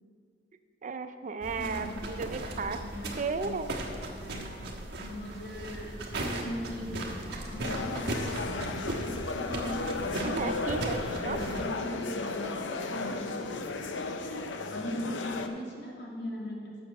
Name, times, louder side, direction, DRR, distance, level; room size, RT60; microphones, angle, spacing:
voice 1, 0.8-2.8 3.2-3.7 10.2-11.4, right 4 dB, 45° right, 9 dB, 0.4 m, -34 dB
sound 1, 1.4-11.7, right 1 dB, 60° right, 1.4 m, -37 dB
voice 2, 1.5-2.0 2.3-3.6 4.2-4.6 5.0-9.8 10.1-10.8 11.3-13.3 14.7-16.8, left 1 dB, 65° left, -3 dB, 2.0 m, -40 dB
sound 2, 5.5-10.0, left 3 dB, 35° left, 0.5 m, -51 dB
sound 3, 7.6-15.5, left 3 dB, 80° left, 0.6 m, -35 dB
7.4 x 6.7 x 6.4 m, 2.2 s
head